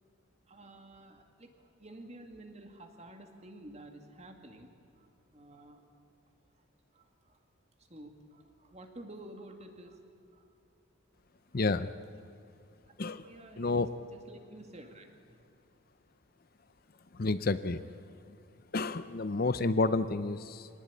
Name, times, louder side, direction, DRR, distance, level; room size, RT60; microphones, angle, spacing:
voice 1, 0.5-5.8 6.9-7.4 7.8-10.0 10.3-10.5 11.5-11.6 13.2-15.4, right 1 dB, 30° right, 5 dB, 2.4 m, -51 dB
voice 2, 11.5-11.9 13.0-13.2 13.6-13.9 17.1-17.8 18.7-20.7, left 3 dB, 45° left, 13 dB, 0.6 m, -30 dB
25.5 x 18.5 x 10.0 m, 2.5 s
head